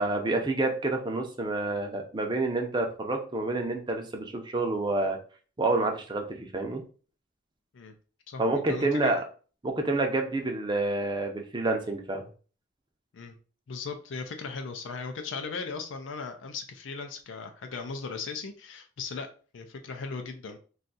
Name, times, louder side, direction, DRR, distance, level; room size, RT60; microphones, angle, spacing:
voice 1, 0.0-5.2 5.6-6.8 8.4-9.2 9.6-12.3, right 2 dB, 25° right, 3 dB, 0.5 m, -28 dB
voice 2, 8.7-9.2 13.1-13.3 13.7-19.3 19.5-20.6, left 4 dB, 70° left, 6 dB, 0.4 m, -37 dB
2.6 x 2.4 x 3.9 m, 0.39 s
head